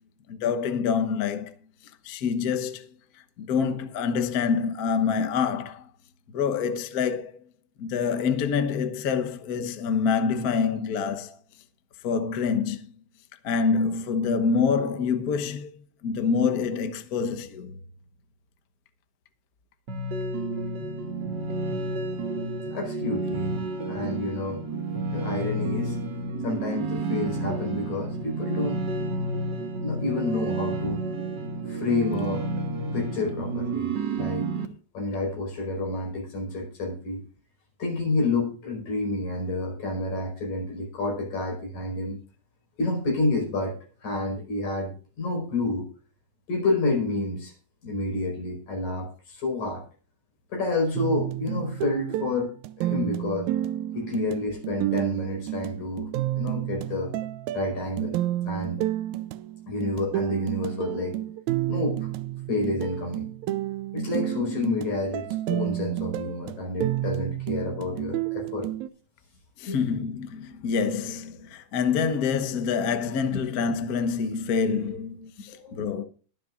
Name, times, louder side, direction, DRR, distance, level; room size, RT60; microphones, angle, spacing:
voice 1, 0.3-1.5 2.0-2.9 3.4-5.9 6.3-7.4 7.8-11.4 12.0-12.9 13.4-15.8 16.0-17.8 69.6-76.0, left 6 dB, 85° left, 0.8 m, -26 dB
sound 1, 19.9-34.7, right 2 dB, 45° right, 1.5 m, -30 dB
voice 2, 22.7-24.6 25.1-26.0 26.4-28.8 29.8-31.0 31.7-32.5 32.9-34.5 34.9-37.2 37.8-42.2 42.8-45.9 46.5-47.5 47.8-49.8 50.5-53.5 53.9-57.1 57.5-58.8 59.7-61.2 61.7-62.1 62.5-63.3 63.9-68.7 69.7-69.8 73.3-73.5 75.5-75.8, left 2 dB, 70° left, 6.2 m, -29 dB
sound 2, 50.9-68.9, right 14 dB, 80° right, 1.9 m, -30 dB
22.0 x 7.7 x 2.5 m
omnidirectional pair, 3.5 m